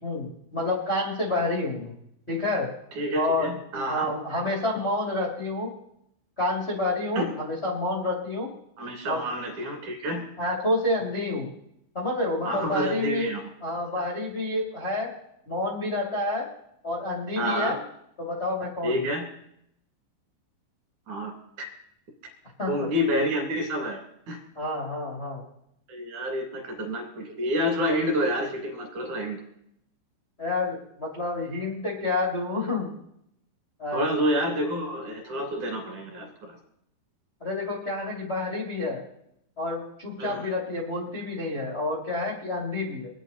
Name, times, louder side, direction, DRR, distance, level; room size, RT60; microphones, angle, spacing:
voice 1, 0.0-1.9 2.3-2.7 3.1-3.5 3.9-5.7 6.4-8.5 9.1-9.2 10.4-11.5 11.9-13.3 13.6-15.1 15.5-16.5 16.8-17.8 18.2-19.0 22.6-22.9 24.5-25.4 30.4-32.9 33.8-34.1 37.4-39.0 39.6-43.1, left 2 dB, 65° left, -5 dB, 0.6 m, -29 dB
voice 2, 2.9-4.1 7.1-7.3 8.8-10.3 12.4-13.4 17.4-17.7 18.8-19.2 21.1-21.3 22.7-24.4 25.9-29.4 33.9-36.6 40.2-40.5, equal, 45° right, 2 dB, 3.3 m, -28 dB
25.0 x 9.1 x 4.1 m, 0.76 s
omnidirectional pair, 5.9 m